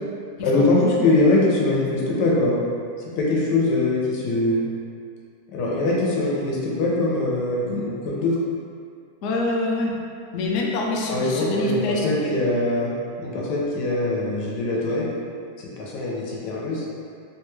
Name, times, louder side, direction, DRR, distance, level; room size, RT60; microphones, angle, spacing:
voice 1, 0.4-2.5 3.1-4.6 5.5-8.3 11.1-15.0 15.6-16.8, left 2 dB, 90° left, -4 dB, 1.3 m, -22 dB
voice 2, 9.2-9.9 10.3-12.3, left 2 dB, 70° left, -2 dB, 0.7 m, -25 dB
3.4 x 2.3 x 3.0 m, 2.3 s
omnidirectional pair, 1.8 m